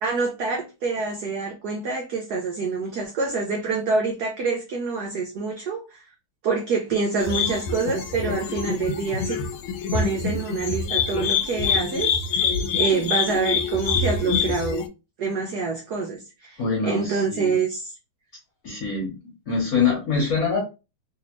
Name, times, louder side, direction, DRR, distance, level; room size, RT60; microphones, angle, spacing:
voice 1, 0.0-6.0 6.4-9.4 9.9-14.8 15.2-17.9, right 4 dB, 70° right, 0.9 m, -26 dB
sound 1, 7.2-14.9, left 6 dB, 85° left, 1.4 m, -25 dB
voice 2, 16.6-17.5 18.6-19.1 19.5-20.6, left 5 dB, 55° left, 1.2 m, -24 dB
3.3 x 2.7 x 3.0 m
omnidirectional pair, 2.3 m